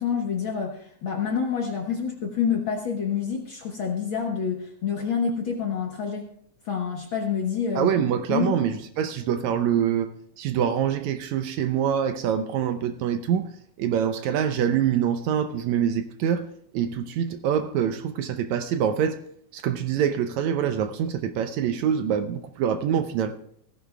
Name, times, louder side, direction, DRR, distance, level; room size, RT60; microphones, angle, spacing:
voice 1, 0.0-6.3 6.6-7.9 8.3-8.6, left 6 dB, 55° left, 1.5 m, -27 dB
voice 2, 7.8-10.1 10.4-13.5 13.8-16.5 16.7-19.2 19.5-23.3, right 8 dB, 80° right, 1.8 m, -25 dB
16.0 x 14.5 x 2.3 m
omnidirectional pair, 3.6 m